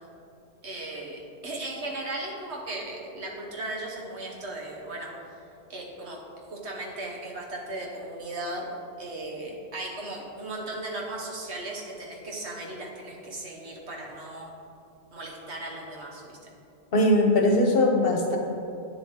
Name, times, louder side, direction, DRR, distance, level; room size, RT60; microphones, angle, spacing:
voice 1, 0.6-5.1 5.7-6.2 6.5-8.7 9.0-14.5 15.1-16.4, right 2 dB, 80° right, -1 dB, 1.5 m, -36 dB
voice 2, 16.9-18.4, left 1 dB, 60° left, 2 dB, 1.2 m, -20 dB
9.7 x 7.2 x 3.7 m, 2.6 s
omnidirectional pair, 1.1 m